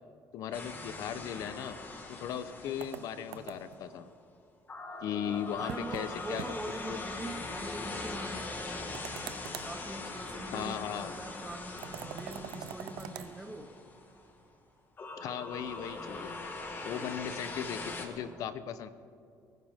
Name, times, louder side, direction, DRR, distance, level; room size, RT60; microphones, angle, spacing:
voice 1, 0.3-1.8 2.1-4.1 5.0-6.4 6.9-7.0 10.5-11.1 15.2-16.4 16.8-18.9, left 9 dB, 65° left, 13 dB, 0.9 m, -37 dB
sound 1, 0.5-3.9 4.7-14.3 15.0-18.1, left 3 dB, 35° left, 1.9 m, -42 dB
sound 2, 2.8-3.8 5.7-6.1 6.4-6.5 6.8-6.9 8.9-9.7 11.8-13.3, right 12 dB, 90° right, 0.7 m, -43 dB
voice 2, 5.3-9.1 9.6-13.8 16.9-17.2, right 2 dB, 10° right, 6 dB, 1.1 m, -43 dB
23.5 x 15.0 x 3.7 m, 2.4 s
cardioid pair, 110°, 6 cm